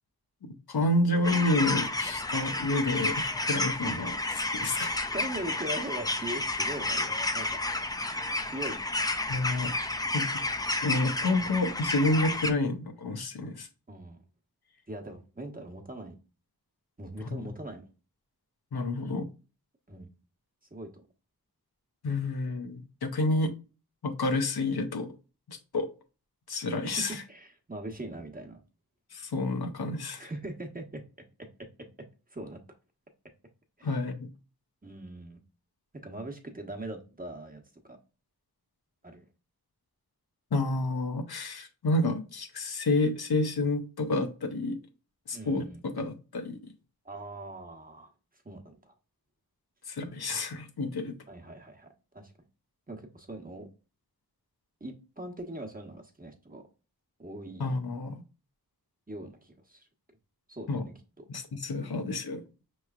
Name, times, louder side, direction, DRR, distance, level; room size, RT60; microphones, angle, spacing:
voice 1, 0.7-4.2 4.5-5.0 9.3-9.7 10.1-10.3 10.8-13.7 17.2-17.5 18.7-19.3 22.0-23.5 24.0-25.1 25.5-25.9 26.5-27.1 29.1-30.3 33.8-34.3 40.5-44.8 45.3-46.7 49.9-51.2 57.6-58.2 60.7-60.8 61.3-62.4, left 2 dB, 90° left, 0.7 m, -29 dB
sound 1, 1.2-12.5, left 2 dB, 10° left, 0.4 m, -31 dB
voice 2, 4.9-7.6 8.4-8.9 13.9-14.2 14.9-16.2 17.0-17.9 19.9-20.1 20.7-21.0 27.3-28.6 30.2-31.0 32.3-32.6 33.8-34.0 34.8-35.4 36.0-37.6 37.9-38.0 39.0-39.2 45.3-45.8 47.0-48.1 48.4-48.9 51.3-52.3 52.9-53.7 54.8-56.6 57.2-57.6 59.1-59.9 60.5-61.2, right 1 dB, 25° right, 0.9 m, -41 dB
5.4 x 3.1 x 2.3 m
wide cardioid pair, 50°, 37 cm